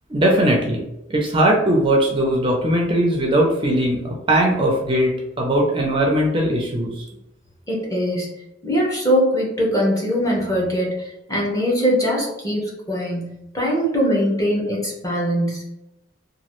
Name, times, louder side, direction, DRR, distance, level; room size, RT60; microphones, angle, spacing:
voice 1, 0.1-0.8 1.1-7.0, right 1 dB, 30° right, -1 dB, 0.5 m, -19 dB
voice 2, 7.7-8.3 8.6-15.6, equal, 20° left, -3 dB, 0.8 m, -22 dB
2.9 x 2.3 x 3.0 m, 0.89 s
head